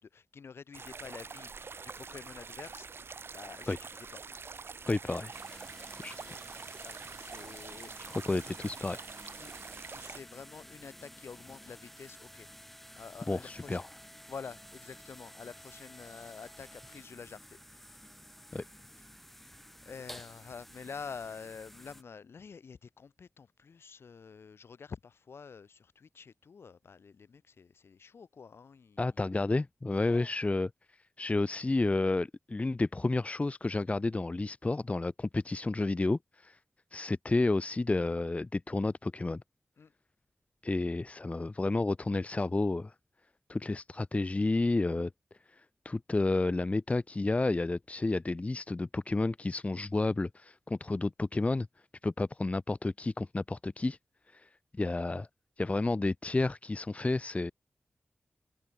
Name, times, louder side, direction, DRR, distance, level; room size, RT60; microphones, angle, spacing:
voice 1, 0.0-1.5 1.8-2.9 3.3-4.2 6.2-8.5 9.4-9.5 9.9-12.5 13.0-13.8 14.3-18.0 19.8-29.4 30.1-30.3 39.8-39.9, left 5 dB, 85° left, 5.9 m, -48 dB
sound 1, 0.7-10.2, right 5 dB, 75° right, 4.0 m, -45 dB
voice 2, 4.9-5.6 6.0-6.4 8.1-9.0 13.3-13.9 18.5-18.6 29.0-30.7 31.2-36.6 36.9-39.4 40.6-42.9 43.5-45.1 45.8-51.7 52.0-54.0 54.3-55.3 55.6-57.5, left 2 dB, 35° left, 0.8 m, -31 dB
sound 2, 5.3-22.0, equal, 5° left, 3.1 m, -52 dB
open air
cardioid pair, 60°, 4 cm